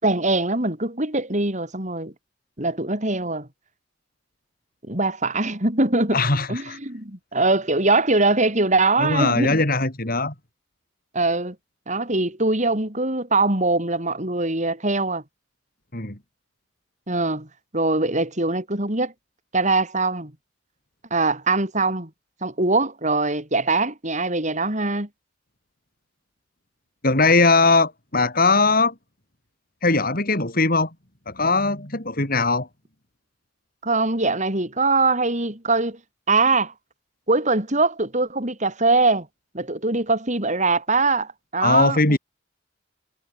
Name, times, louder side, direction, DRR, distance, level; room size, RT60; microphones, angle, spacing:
voice 1, 0.0-2.1 2.6-3.5 4.9-6.2 6.5-9.6 11.1-11.5 11.9-15.2 17.1-17.5 17.7-19.1 19.5-20.3 21.1-22.1 22.4-25.1 33.8-36.0 36.3-36.7 37.3-39.3 39.5-42.2, right 3 dB, 40° right, 5.1 m, -22 dB
voice 2, 6.1-6.8 9.0-10.3 15.9-16.2 27.0-28.9 29.8-30.9 31.3-32.7 41.6-42.2, left 3 dB, 50° left, 4.5 m, -20 dB
head